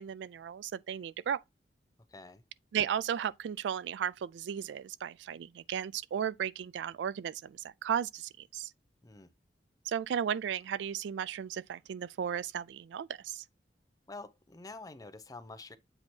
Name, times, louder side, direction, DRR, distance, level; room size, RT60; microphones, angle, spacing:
voice 1, 0.0-1.4 2.7-8.7 9.9-13.4, right 8 dB, 75° right, 0.3 m, -35 dB
voice 2, 2.1-2.4 9.0-9.3 14.1-15.8, left 3 dB, 20° left, 0.6 m, -47 dB
7.8 x 2.8 x 4.3 m
head